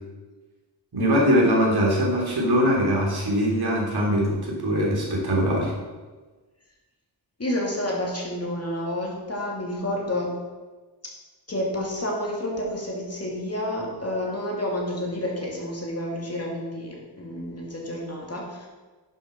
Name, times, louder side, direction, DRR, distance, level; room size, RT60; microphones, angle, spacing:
voice 1, 0.9-5.7, equal, 55° right, -3 dB, 3.5 m, -22 dB
voice 2, 7.4-10.3 11.5-18.7, left 1 dB, 30° left, -2 dB, 2.7 m, -29 dB
10.5 x 7.1 x 6.0 m, 1.3 s
wide cardioid pair, 130°, 46 cm